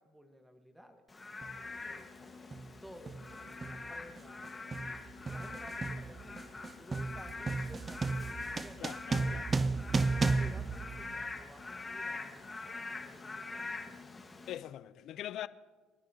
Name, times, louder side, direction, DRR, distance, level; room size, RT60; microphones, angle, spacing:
voice 1, 0.0-2.1 2.8-5.0 5.3-9.3 9.9-14.0, equal, 5° right, 1.4 m, -55 dB
Frog / Rain, 1.1-14.6, left 3 dB, 20° left, 1.5 m, -44 dB
sound 1, 1.4-1.6 2.5-2.8 3.1-11.6, right 4 dB, 25° right, 0.4 m, -34 dB
sound 2, 1.6-14.7, left 5 dB, 40° left, 1.6 m, -56 dB
voice 2, 8.8-9.4 14.5-15.5, left 12 dB, 60° left, 0.5 m, -42 dB
25.0 x 12.0 x 2.8 m
supercardioid pair, 80°, 0 cm